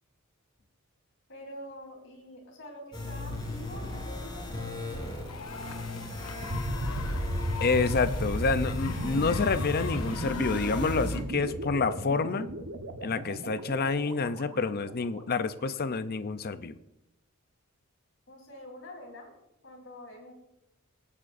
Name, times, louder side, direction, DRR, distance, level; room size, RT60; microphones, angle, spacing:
voice 1, 1.3-5.3 18.3-19.3 19.6-20.3, left 1 dB, 65° left, 1 dB, 3.7 m, -46 dB
sound 1, 2.9-11.2, left 2 dB, 20° left, 4.0 m, -38 dB
sound 2, 5.2-11.2, left 6 dB, 85° left, 0.8 m, -43 dB
sound 3, 6.4-15.3, equal, 85° right, 1.2 m, -35 dB
voice 2, 7.6-12.5 13.0-16.7, left 4 dB, 45° left, 12 dB, 0.6 m, -28 dB
24.0 x 8.6 x 2.6 m, 0.88 s
head